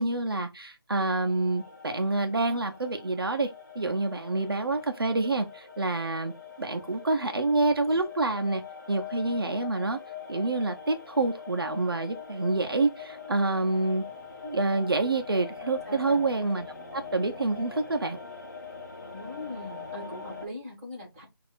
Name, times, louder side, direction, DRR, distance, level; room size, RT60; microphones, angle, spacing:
voice 1, 0.0-3.5 3.7-6.3 6.6-8.6 8.9-10.0 10.3-14.0 14.4-16.7 16.9-18.2, right 2 dB, 65° right, 0.9 m, -27 dB
sound 1, 1.0-20.5, left 6 dB, 45° left, 1.1 m, -43 dB
voice 2, 15.8-16.2 19.1-21.2, left 1 dB, 15° right, 1.7 m, -41 dB
6.2 x 2.8 x 2.5 m
figure-of-eight pair, 175°, 13 cm